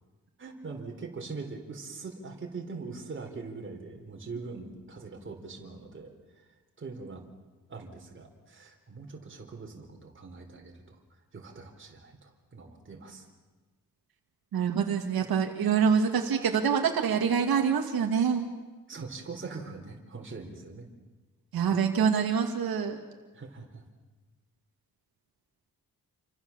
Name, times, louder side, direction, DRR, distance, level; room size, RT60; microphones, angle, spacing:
voice 1, 0.4-6.5 6.8-7.2 7.7-11.0 11.3-13.3 18.9-20.9 23.3-23.8, right 4 dB, 35° right, 2 dB, 4.1 m, -42 dB
voice 2, 14.5-18.5 21.5-23.0, right 7 dB, 85° right, 3 dB, 2.4 m, -25 dB
29.0 x 25.0 x 7.3 m, 1.2 s
wide cardioid pair, 165°, 35 cm